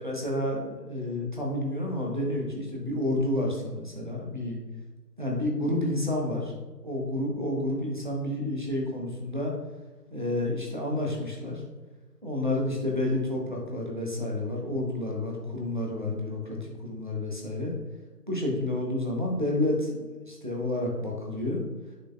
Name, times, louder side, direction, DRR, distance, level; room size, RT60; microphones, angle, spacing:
voice 1, 0.0-4.6 5.2-6.5 6.8-9.5 10.1-11.6 12.2-17.7 18.3-21.6, left 1 dB, 30° right, -2 dB, 0.9 m, -30 dB
6.5 x 6.1 x 2.4 m, 1.2 s
figure-of-eight pair, 165°, 49 cm